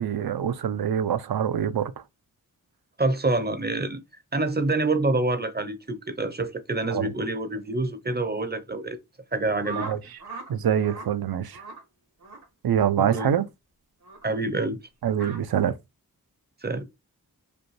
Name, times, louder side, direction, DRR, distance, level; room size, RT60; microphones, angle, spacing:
voice 1, 0.0-1.9 6.9-7.1 9.8-10.0 10.5-11.6 12.6-13.4 15.0-15.8, right 9 dB, 75° right, 0.5 m, -25 dB
voice 2, 3.0-4.0 4.3-9.0 9.3-9.9 13.0-13.4 14.2-14.8 16.6-16.8, right 2 dB, 25° right, 0.6 m, -27 dB
sound 1, 9.6-10.5 10.8-11.1 11.5-11.8 12.2-12.4 13.1-13.3 14.0-14.2 15.1-15.4, right 4 dB, 90° right, 1.9 m, -39 dB
5.1 x 2.2 x 3.1 m
wide cardioid pair, 70°, 37 cm